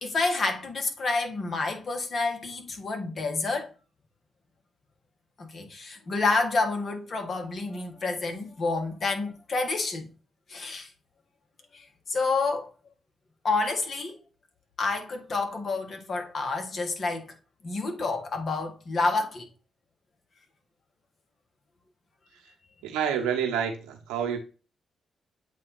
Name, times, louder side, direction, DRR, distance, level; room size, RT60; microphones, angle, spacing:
voice 1, 0.0-3.7 5.4-10.1 10.5-10.9 11.7-12.7 13.4-14.2 14.8-17.3 17.6-19.5, left 3 dB, 55° left, 1.7 m, -29 dB
voice 2, 22.8-24.4, right 8 dB, 85° right, 1.2 m, -28 dB
8.2 x 2.8 x 4.1 m
hypercardioid pair, 45°, 0 cm